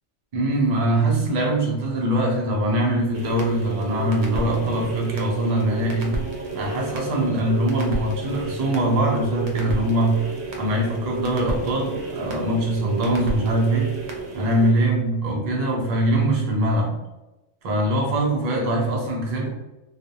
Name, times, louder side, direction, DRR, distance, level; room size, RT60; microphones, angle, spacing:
voice 1, 0.3-6.2 6.5-10.2 10.6-13.9 14.3-17.0 17.6-19.5, right 1 dB, 50° right, 0 dB, 0.5 m, -22 dB
sound 1, 3.1-14.7, right 3 dB, 75° right, 0.9 m, -31 dB
2.4 x 2.0 x 2.7 m, 1.0 s
omnidirectional pair, 1.3 m